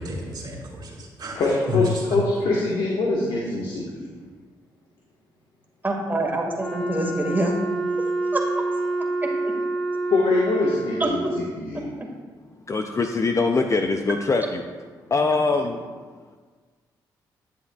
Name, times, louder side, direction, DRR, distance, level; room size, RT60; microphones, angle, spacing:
voice 1, 0.0-2.2, left 3 dB, 50° right, -3 dB, 2.4 m, -30 dB
voice 2, 1.3-1.8 2.1-4.1 10.1-11.8, left 3 dB, 70° left, -4 dB, 1.4 m, -24 dB
voice 3, 5.8-7.5 8.3-8.4 11.0-11.3, right 2 dB, 20° right, -1 dB, 2.0 m, -24 dB
Wind instrument woodwind instrument, 6.6-11.3, right 2 dB, 10° left, 1.3 m, -27 dB
voice 4, 12.7-14.6 15.1-15.8, left 3 dB, 35° left, 5 dB, 0.5 m, -22 dB
11.0 x 7.2 x 2.4 m, 1.5 s
supercardioid pair, 60°, 9 cm